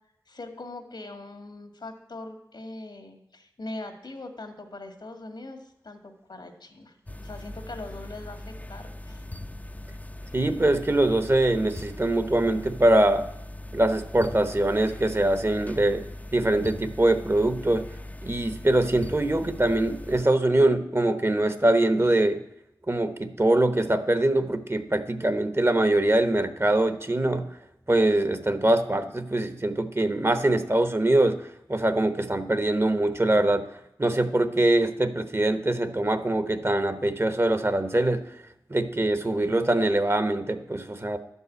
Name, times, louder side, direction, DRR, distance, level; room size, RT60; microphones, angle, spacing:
voice 1, 0.3-6.9 7.2-9.2, left 2 dB, 80° left, 5 dB, 1.8 m, -41 dB
sound 1, 7.1-20.2, left 1 dB, 20° left, 0.6 m, -40 dB
voice 2, 10.3-13.3 13.7-16.0 16.3-17.8 18.2-22.4 22.9-27.4 27.9-31.4 31.7-33.7 34.0-38.2 38.7-41.2, right 1 dB, 35° right, 11 dB, 1.0 m, -23 dB
12.0 x 5.5 x 8.2 m, 0.82 s
cardioid pair, 40°, 8 cm